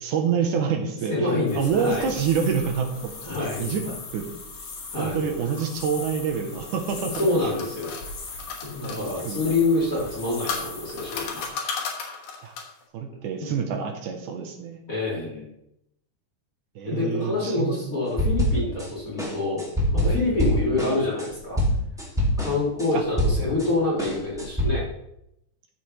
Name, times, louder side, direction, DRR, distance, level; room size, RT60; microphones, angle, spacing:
voice 1, 0.0-1.3 1.6-3.1 3.6-3.8 4.1-4.3 5.0-7.3 8.8-9.6 12.4-12.5 12.9-14.8 16.8-17.8 22.9-23.0 23.5-23.6, right 6 dB, 75° right, 4 dB, 2.5 m, -27 dB
voice 2, 1.1-2.1 3.2-3.8 4.9-5.2 7.0-7.9 8.6-11.5 13.4-13.5 14.9-15.5 16.9-19.7 19.9-21.6 22.4-24.9, left 2 dB, 25° left, -5 dB, 2.6 m, -26 dB
sound 1, 1.5-11.5, left 3 dB, 50° left, 2.5 m, -40 dB
sound 2, 6.7-9.0 10.0-12.8, left 5 dB, 75° left, 2.9 m, -34 dB
sound 3, 18.2-18.9 19.2-23.7 24.0-24.6, equal, ahead, 1.8 m, -24 dB
14.0 x 7.1 x 3.3 m, 0.82 s
omnidirectional pair, 3.8 m